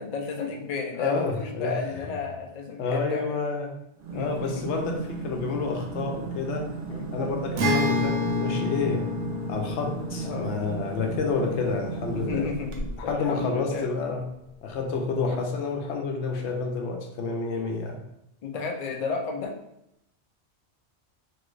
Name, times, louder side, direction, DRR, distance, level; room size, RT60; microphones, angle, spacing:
voice 1, 0.0-3.4 4.1-4.7 6.9-7.1 10.2-10.5 12.1-13.9 18.4-19.5, left 4 dB, 55° left, 2 dB, 0.4 m, -33 dB
voice 2, 0.9-1.8 2.0-2.1 2.8-3.7 4.1-6.7 7.1-9.0 9.5-12.5 13.0-14.3 14.6-18.0, left 4 dB, 85° left, 3 dB, 0.9 m, -29 dB
sound 1, 4.0-13.2, right 4 dB, 60° right, 0.7 m, -35 dB
Acoustic guitar, 7.6-13.0, left 2 dB, 85° right, 0.9 m, -30 dB
2.9 x 2.4 x 3.1 m, 0.81 s
omnidirectional pair, 1.1 m